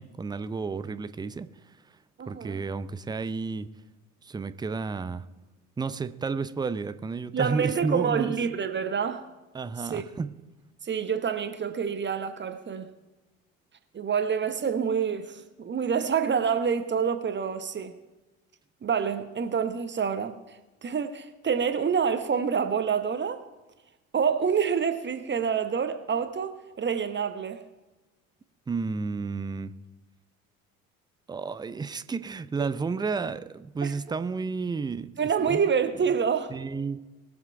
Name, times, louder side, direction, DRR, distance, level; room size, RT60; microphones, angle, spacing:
voice 1, 0.0-1.5 2.3-3.7 4.2-5.3 5.8-8.4 9.5-10.3 28.7-29.7 31.3-35.6 36.5-37.0, right 4 dB, 10° right, 0.5 m, -31 dB
voice 2, 2.2-2.6 7.3-9.3 9.8-10.0 10.8-12.9 13.9-18.0 18.8-23.4 24.1-27.6 33.8-33.9 35.2-36.5, right 6 dB, 25° right, 1.0 m, -27 dB
20.5 x 7.3 x 4.6 m
figure-of-eight pair, 55°, 43 cm